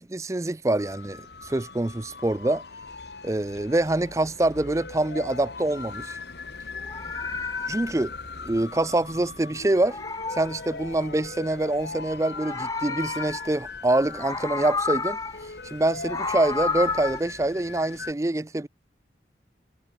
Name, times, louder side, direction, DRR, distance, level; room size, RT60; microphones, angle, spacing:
voice 1, 0.1-2.6 3.2-6.2 7.7-8.1 8.4-10.0 10.3-15.2 15.7-18.7, right 2 dB, 15° right, 0.4 m, -25 dB
sound 1, 0.8-18.1, left 4 dB, 75° left, 1.8 m, -39 dB
Meow, 6.7-9.3 9.6-11.3 12.1-13.8 14.1-15.5 15.9-17.2, left 4 dB, 20° left, 1.5 m, -32 dB
head